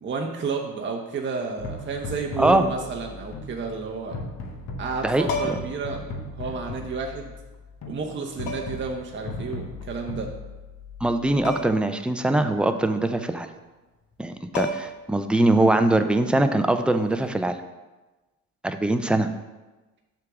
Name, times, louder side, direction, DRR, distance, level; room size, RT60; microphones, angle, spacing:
voice 1, 0.0-4.2 4.8-6.0 6.3-7.3 7.9-10.3, right 4 dB, 30° right, 1 dB, 0.8 m, -31 dB
sound 1, 1.6-11.7, left 2 dB, 45° left, 1.0 m, -37 dB
voice 2, 5.0-5.6 11.0-13.5 14.2-17.6 18.6-19.3, right 2 dB, 5° right, 8 dB, 0.3 m, -22 dB
sound 2, 5.2-5.8 7.2-7.3 8.5-8.9 11.4-11.9 12.2-12.3 14.1-14.2 14.5-15.1 17.1-17.3, left 2 dB, 60° left, 1.1 m, -31 dB
6.4 x 3.7 x 6.0 m, 1.2 s
cardioid pair, 90°, 38 cm